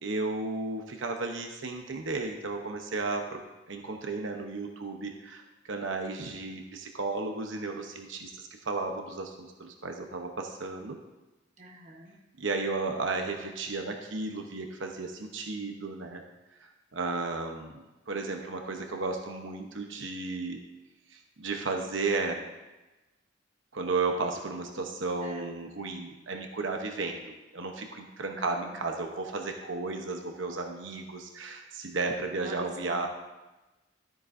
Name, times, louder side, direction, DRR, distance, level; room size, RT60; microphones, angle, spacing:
voice 1, 0.0-3.4 3.7-11.0 12.4-16.2 16.6-20.6 21.1-22.4 23.7-33.1, right 3 dB, 85° right, 3 dB, 0.9 m, -34 dB
voice 2, 11.6-12.1 25.2-25.5 28.3-28.8 32.3-33.1, right 1 dB, 40° right, 0 dB, 1.3 m, -46 dB
12.5 x 9.0 x 2.7 m, 1.1 s
head